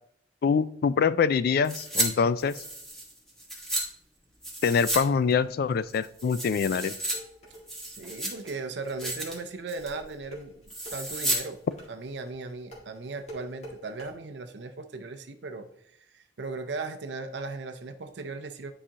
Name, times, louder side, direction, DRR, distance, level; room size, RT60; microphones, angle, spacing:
voice 1, 0.4-2.6 4.6-6.9, left 6 dB, 60° left, 17 dB, 0.3 m, -24 dB
sound 1, 1.6-2.1 2.4-3.8 4.4-5.0 5.3-5.4 5.9-7.2 7.5-8.5 8.9-9.4 9.7-10.0 10.7-11.4 11.7-11.8, right 1 dB, ahead, 1.4 m, -32 dB
sound 2, 7.0-14.1, right 1 dB, 40° left, 2.0 m, -46 dB
voice 2, 7.8-10.6 10.9-11.6 11.9-15.7 16.0-18.7, right 3 dB, 70° right, 7 dB, 0.6 m, -37 dB
10.0 x 4.8 x 2.9 m, 0.71 s
head